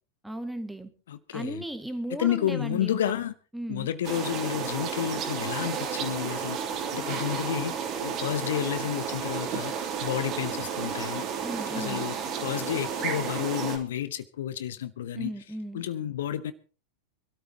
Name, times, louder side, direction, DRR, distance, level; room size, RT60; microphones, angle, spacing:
voice 1, 0.2-0.9 1.3-3.2 3.5-3.9 11.4-12.1 15.1-15.8, right 1 dB, 5° right, 2.0 m, -36 dB
voice 2, 2.2-3.3 3.7-6.6 6.9-7.7 8.0-9.7 10.0-11.2 11.8-12.1 12.4-15.3 15.7-16.5, left 11 dB, 60° left, 0.9 m, -30 dB
sound 1, 4.0-13.8, right 7 dB, 35° right, 3.1 m, -32 dB
25.5 x 13.0 x 2.9 m
figure-of-eight pair, 90°, 0 cm